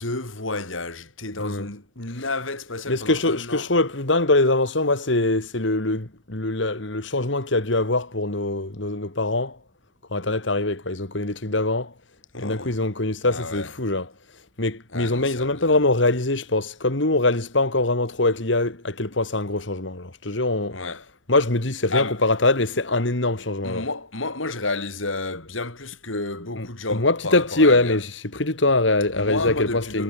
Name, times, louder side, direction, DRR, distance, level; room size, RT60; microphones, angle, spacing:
voice 1, 0.0-3.7 12.3-12.8 13.2-13.7 14.9-15.8 20.7-21.0 21.9-22.2 23.6-28.0 29.1-30.0, left 3 dB, 90° left, 5.2 m, -31 dB
voice 2, 2.9-9.6 10.1-11.9 12.4-14.1 14.6-20.8 21.3-23.9 26.6-30.0, left 2 dB, 70° left, 2.5 m, -23 dB
head